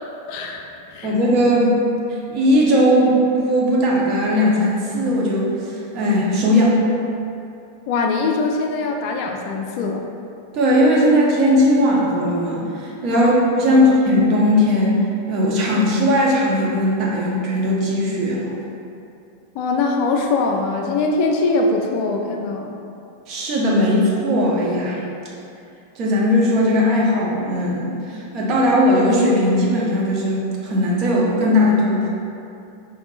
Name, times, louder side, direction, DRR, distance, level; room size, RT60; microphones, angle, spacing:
voice 1, 0.3-1.1 7.9-10.0 13.1-13.3 13.6-13.8 19.6-22.7, left 3 dB, 45° left, 2 dB, 0.3 m, -22 dB
voice 2, 1.0-1.8 2.3-6.8 10.5-15.0 15.3-18.5 23.3-25.0 26.0-32.1, equal, 35° right, -4 dB, 0.8 m, -18 dB
5.3 x 2.9 x 2.4 m, 2.6 s
figure-of-eight pair, 90°, 0 cm